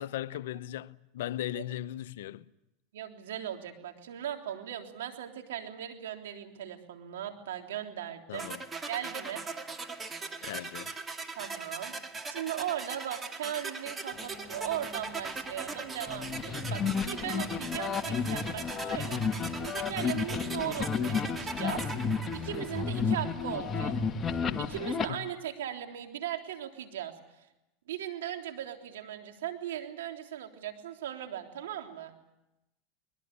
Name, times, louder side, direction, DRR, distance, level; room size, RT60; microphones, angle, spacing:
voice 1, 0.0-2.4 8.3-8.6 10.4-10.9 25.1-25.3, left 13 dB, 80° left, 0.8 m, -37 dB
voice 2, 2.9-8.5 8.9-9.4 11.4-11.9 12.3-22.0 22.3-24.0 24.6-27.1 27.9-32.2, right 11 dB, 90° right, 3.4 m, -38 dB
sound 1, 8.4-23.3, right 4 dB, 20° right, 2.3 m, -40 dB
sound 2, 14.1-24.9, left 9 dB, 50° left, 5.1 m, -52 dB
sound 3, 16.1-25.1, left 5 dB, 25° left, 1.4 m, -32 dB
22.5 x 22.0 x 8.3 m
supercardioid pair, 120°, 0 cm